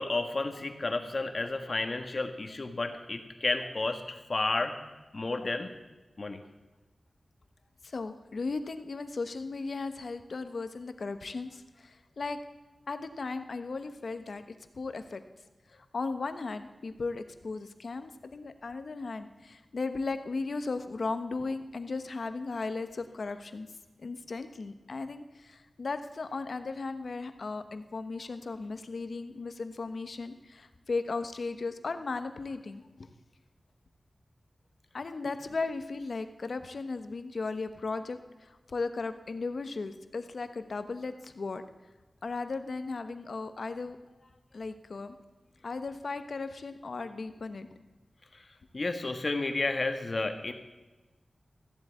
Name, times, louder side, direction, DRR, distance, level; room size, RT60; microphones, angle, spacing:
voice 1, 0.0-4.7 5.1-5.7 6.2-6.4 48.3-48.4 48.7-50.5, left 3 dB, 50° left, 7 dB, 1.3 m, -31 dB
voice 2, 7.8-12.4 12.9-15.2 15.7-23.7 24.0-33.1 34.9-41.6 42.2-44.0 44.5-45.1 45.6-47.7, left 3 dB, 70° left, 9 dB, 1.0 m, -36 dB
14.5 x 8.0 x 8.1 m, 1.2 s
wide cardioid pair, 80°, 0 cm